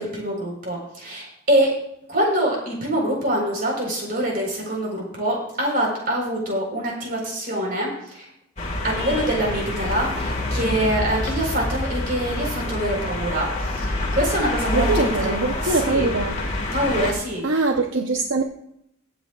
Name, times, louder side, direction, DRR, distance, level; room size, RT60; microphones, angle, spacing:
voice 1, 0.0-1.7 2.1-8.3 8.8-15.4 15.6-16.1 16.7-17.6, right 1 dB, 45° right, -1 dB, 4.3 m, -25 dB
sound 1, 8.6-17.1, left 2 dB, 35° left, 1.8 m, -27 dB
voice 2, 14.7-16.4 17.4-18.4, right 3 dB, 65° right, 3 dB, 0.8 m, -22 dB
22.5 x 8.4 x 2.4 m, 0.77 s
head